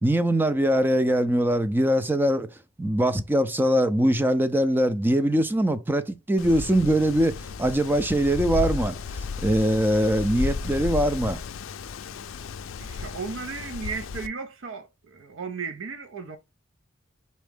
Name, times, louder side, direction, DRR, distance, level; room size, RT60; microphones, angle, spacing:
voice 1, 0.0-2.5 2.8-9.0 9.4-11.4, right 1 dB, 10° right, 0.3 m, -22 dB
Wind, 6.4-14.3, left 4 dB, 80° left, 0.4 m, -33 dB
voice 2, 12.8-16.4, right 5 dB, 75° right, 0.5 m, -35 dB
4.2 x 3.5 x 3.4 m
head